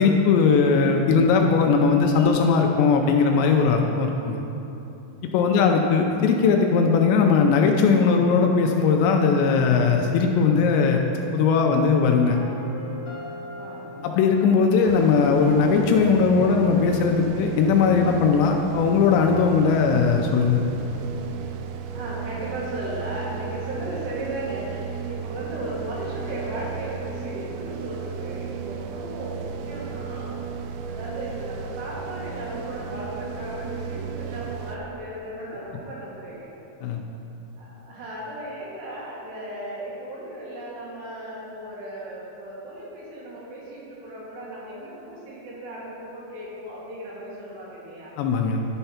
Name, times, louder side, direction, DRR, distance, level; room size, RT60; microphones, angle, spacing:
voice 1, 0.0-4.4 5.3-11.0 11.3-12.4 14.0-20.6 36.8-37.0 48.2-48.6, left 5 dB, 80° left, 2 dB, 2.7 m, -19 dB
voice 2, 5.5-5.9 13.6-14.1 21.9-36.5 37.6-48.1, right 1 dB, 70° right, -6 dB, 3.6 m, -36 dB
sound 1, 12.2-20.2, left 1 dB, 45° left, 2.4 m, -42 dB
sound 2, 14.9-34.8, right 6 dB, 85° right, 2.8 m, -34 dB
11.0 x 4.5 x 5.7 m, 2.9 s
omnidirectional pair, 5.3 m